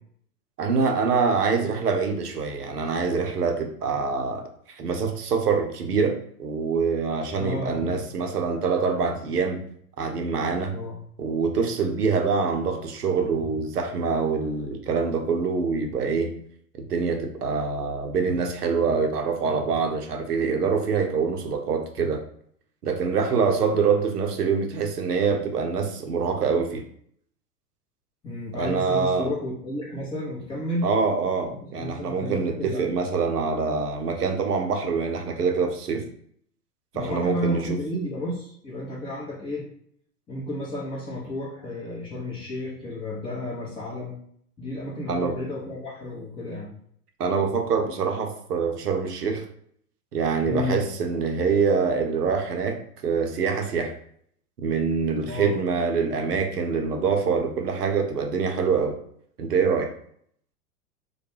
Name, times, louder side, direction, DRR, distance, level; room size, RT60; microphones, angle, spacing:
voice 1, 0.6-9.6 10.0-10.7 11.2-16.3 16.8-22.2 22.8-26.8 28.6-29.3 30.8-36.0 36.9-37.8 45.1-45.3 47.2-49.5 50.1-53.9 54.6-59.0 59.4-59.9, right 5 dB, 80° right, 4 dB, 0.6 m, -25 dB
voice 2, 7.4-7.8 10.7-11.0 23.4-23.7 28.2-30.9 31.6-32.8 36.9-39.6 40.3-44.2 44.6-46.7 50.5-50.8 55.3-55.5, left 1 dB, 10° left, -5 dB, 0.5 m, -32 dB
2.2 x 2.2 x 3.2 m, 0.65 s
figure-of-eight pair, 95°, 47 cm